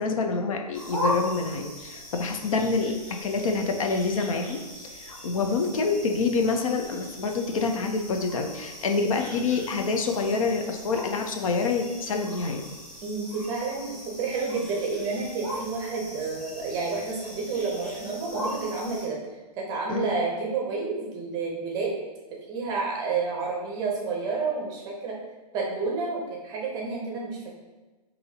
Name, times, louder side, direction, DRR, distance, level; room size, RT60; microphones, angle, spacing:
voice 1, 0.0-12.6 19.9-20.2, left 4 dB, 55° left, 4 dB, 0.5 m, -27 dB
sound 1, 0.7-19.1, equal, 5° left, 1.3 m, -39 dB
voice 2, 13.0-19.2 19.5-22.0 22.5-25.2 25.5-27.5, right 4 dB, 20° right, -2 dB, 0.7 m, -30 dB
5.5 x 2.7 x 2.8 m, 1.2 s
hypercardioid pair, 150°, 21 cm